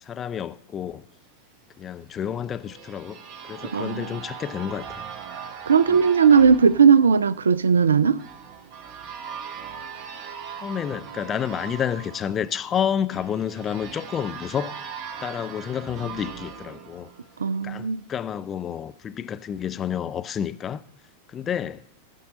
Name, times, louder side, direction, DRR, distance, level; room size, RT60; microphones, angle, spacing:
voice 1, 0.1-1.0 1.8-3.2 3.5-5.0 5.9-6.0 10.6-14.7 15.2-17.1 17.6-20.8 21.3-21.8, left 8 dB, 25° left, 0.4 m, -29 dB
sound 1, 2.1-17.8, right 7 dB, 40° right, 0.9 m, -40 dB
voice 2, 3.7-4.2 5.7-8.2 17.4-18.0, right 6 dB, 70° right, 0.3 m, -17 dB
15.0 x 5.5 x 5.1 m
figure-of-eight pair, 90°, 0 cm